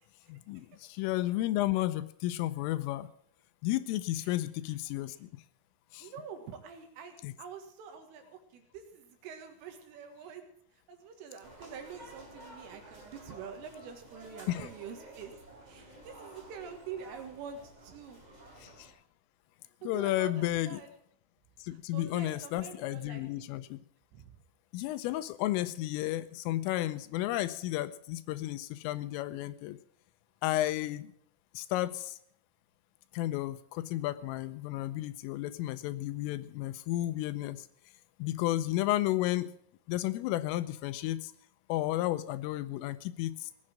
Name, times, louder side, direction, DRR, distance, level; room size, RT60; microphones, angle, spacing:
voice 1, 0.3-3.1 3.6-5.3 5.9-6.1 7.2-7.3 14.5-14.7 18.6-18.9 19.8-20.8 21.6-23.8 24.7-29.8 30.4-31.1 31.5-32.2 33.1-37.7 38.2-39.5 39.9-41.3 41.7-43.5, left 15 dB, 80° left, 13 dB, 3.2 m, -32 dB
voice 2, 6.0-10.5 10.9-15.3 15.7-18.2 19.8-20.9 21.9-23.2 24.1-24.3, right 7 dB, 75° right, 5 dB, 4.0 m, -46 dB
sound 1, 11.4-18.9, right 1 dB, 10° right, 3.6 m, -52 dB
18.5 x 8.6 x 7.4 m, 0.65 s
omnidirectional pair, 6.0 m